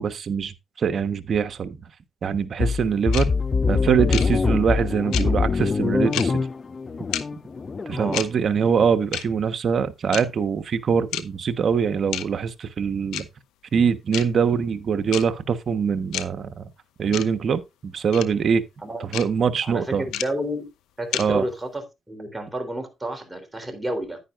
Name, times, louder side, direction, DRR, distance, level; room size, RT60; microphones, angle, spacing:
voice 1, 0.0-1.8 2.2-3.3 3.7-6.5 7.9-13.3 13.7-16.6 17.0-18.6 19.1-20.0 21.2-21.4, right 6 dB, 50° right, 1.2 m, -23 dB
sound 1, 2.6-8.2, left 4 dB, 35° left, 0.4 m, -24 dB
sound 2, 3.1-3.2 4.1-4.2 5.1-5.2 6.1-6.2 7.1-7.2 8.1-8.3 9.1-9.2 10.1-10.2 11.1-11.2 12.1-12.2 13.1-13.2 14.1-14.2 15.1-15.2 16.1-16.2 17.1-17.2 18.1-18.2 19.1-19.2 20.1-20.2 21.1-21.2, left 12 dB, 90° left, 0.8 m, -28 dB
voice 2, 19.6-20.7 21.0-24.2, right 1 dB, 10° right, 3.6 m, -30 dB
10.5 x 9.6 x 2.5 m
cardioid pair, 90°, 0 cm